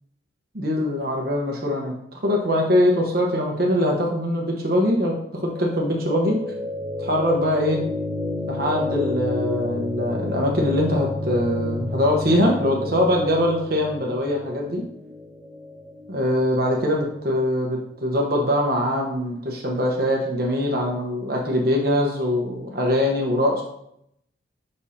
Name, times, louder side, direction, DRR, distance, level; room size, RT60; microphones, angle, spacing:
voice 1, 0.5-6.4 7.0-7.8 8.5-14.8 16.1-23.6, left 1 dB, 55° right, -1 dB, 1.1 m, -22 dB
sound 1, 5.3-17.4, left 2 dB, 25° right, 1.0 m, -31 dB
6.9 x 5.4 x 2.9 m, 0.74 s
head